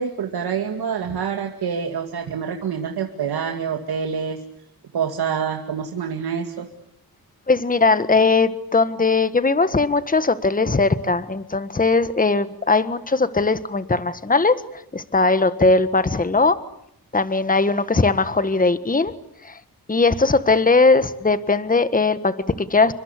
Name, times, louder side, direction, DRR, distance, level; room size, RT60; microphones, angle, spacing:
voice 1, 0.0-4.4 4.9-6.7, right 7 dB, 90° right, 3 dB, 2.4 m, -26 dB
voice 2, 7.5-16.6 17.1-19.1 19.4-19.6 19.9-22.9, left 3 dB, 20° left, 12 dB, 1.6 m, -19 dB
29.0 x 24.5 x 8.2 m, 0.74 s
cardioid pair, 80°, 37 cm